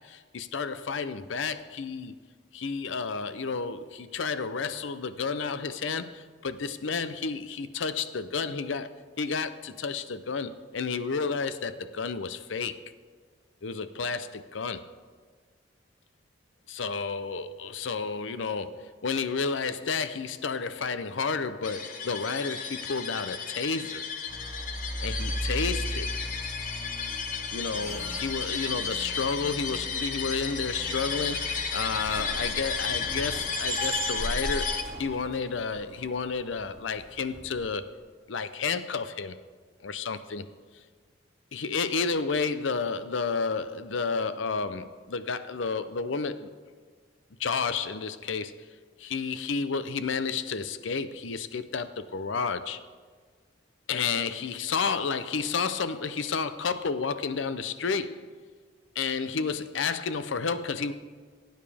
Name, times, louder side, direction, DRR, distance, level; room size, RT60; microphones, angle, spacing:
voice 1, 0.0-2.1 2.5-12.7 13.6-14.9 16.7-24.1 25.0-26.1 27.5-37.9 38.3-39.4 39.8-40.5 41.5-46.5 47.4-48.6 49.0-52.8 53.9-58.3 59.0-61.0, left 5 dB, 85° left, 12 dB, 0.6 m, -31 dB
sound 1, 21.6-34.8, left 6 dB, 45° left, 0.8 m, -33 dB
sound 2, 24.3-37.9, right 1 dB, 5° right, 2.5 m, -37 dB
17.5 x 9.1 x 3.4 m, 1.5 s
head